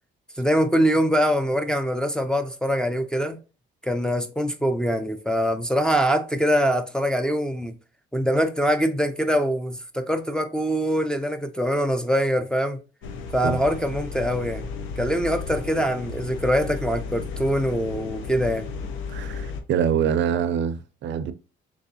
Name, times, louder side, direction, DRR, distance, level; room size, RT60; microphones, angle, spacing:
voice 1, 0.4-3.4 3.8-7.7 8.1-12.8 13.3-14.6 15.0-18.7, equal, 5° left, 0.4 m, -23 dB
sound 1, 13.0-19.6, left 5 dB, 90° left, 0.6 m, -34 dB
voice 2, 19.1-21.3, right 8 dB, 65° right, 0.4 m, -25 dB
3.4 x 3.0 x 2.7 m
cardioid pair, 90°, 20 cm